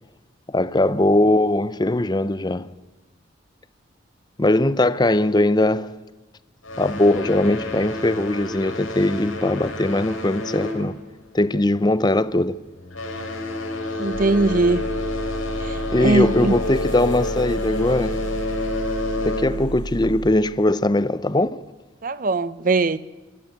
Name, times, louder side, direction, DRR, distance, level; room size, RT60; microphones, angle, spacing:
voice 1, 0.5-2.7 4.4-5.9 6.8-11.0 11.3-12.6 15.9-18.2 19.2-21.6, left 1 dB, 20° left, 0.6 m, -20 dB
sound 1, 6.6-11.5 11.8-12.2 12.7-19.8, left 2 dB, 90° left, 4.8 m, -29 dB
voice 2, 14.0-14.9 15.6-16.5 22.0-23.0, right 3 dB, 40° right, 0.7 m, -21 dB
sound 2, 14.1-20.3, right 3 dB, 55° right, 1.0 m, -33 dB
25.5 x 13.0 x 8.2 m
head